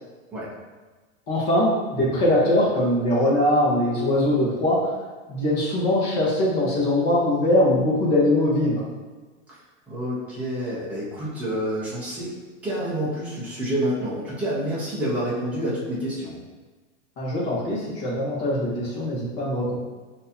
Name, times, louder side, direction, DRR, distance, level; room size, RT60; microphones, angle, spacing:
voice 1, 1.3-5.0 5.3-8.8 17.2-19.8, left 1 dB, 25° left, -5 dB, 1.0 m, -22 dB
voice 2, 9.9-12.3 12.6-16.4, equal, 5° right, -9 dB, 0.6 m, -28 dB
6.2 x 2.8 x 2.7 m, 1.3 s
supercardioid pair, 170°, 38 cm